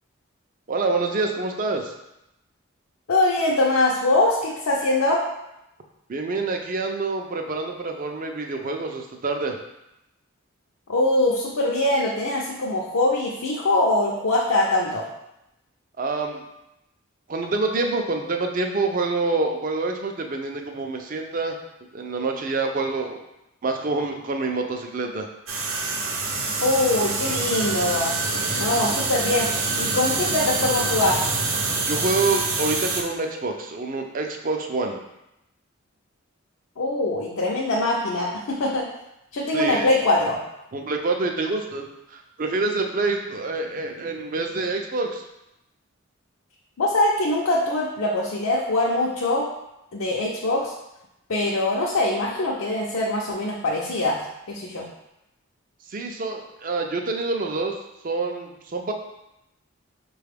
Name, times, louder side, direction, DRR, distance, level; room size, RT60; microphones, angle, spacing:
voice 1, 0.7-1.9 6.1-9.6 16.0-16.4 17.3-21.6 21.9-23.2 23.6-25.3 31.9-35.0 39.5-39.9 40.7-45.2 55.9-57.7 58.0-58.9, right 3 dB, 40° right, 3 dB, 0.4 m, -26 dB
voice 2, 3.1-5.2 10.9-15.0 26.6-28.1 28.6-29.5 29.8-31.3 36.8-38.9 39.3-40.4 46.8-49.5 49.9-50.7 51.3-54.2 54.5-54.9, left 2 dB, 75° left, -4 dB, 0.6 m, -23 dB
sound 1, 25.5-33.0, right 3 dB, 75° right, 0.7 m, -26 dB
5.6 x 2.3 x 3.4 m, 0.88 s
head